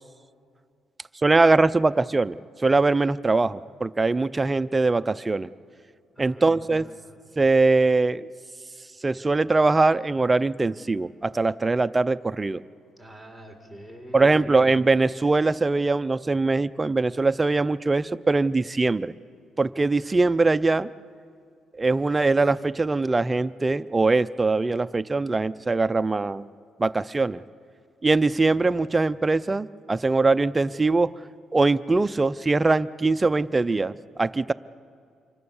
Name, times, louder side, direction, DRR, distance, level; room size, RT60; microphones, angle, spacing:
voice 1, 1.2-5.5 6.2-6.9 7.4-8.3 9.0-12.6 14.1-19.1 19.6-20.9 21.8-26.5 26.8-27.4 28.0-31.1 31.5-34.5, right 3 dB, 20° right, 13 dB, 0.5 m, -22 dB
voice 2, 6.1-7.3 13.0-14.7, equal, 15° left, 3 dB, 4.6 m, -46 dB
26.0 x 23.5 x 7.2 m, 2.3 s
cardioid pair, 95°, 0 cm